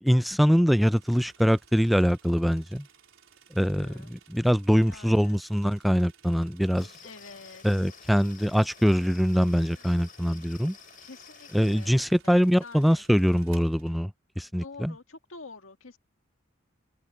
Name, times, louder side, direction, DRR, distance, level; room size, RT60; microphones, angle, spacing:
voice 1, 0.0-2.9 3.5-6.9 7.6-10.8 11.5-14.9, equal, ahead, 0.3 m, -23 dB
sound 1, 0.8-14.0, right 8 dB, 75° right, 4.1 m, -58 dB
voice 2, 3.6-4.2 4.8-5.4 7.0-8.0 9.7-10.1 11.0-12.0 12.2-13.0 14.6-16.0, left 4 dB, 85° left, 1.9 m, -48 dB
sound 2, 6.7-11.9, left 7 dB, 45° left, 5.9 m, -51 dB
open air
head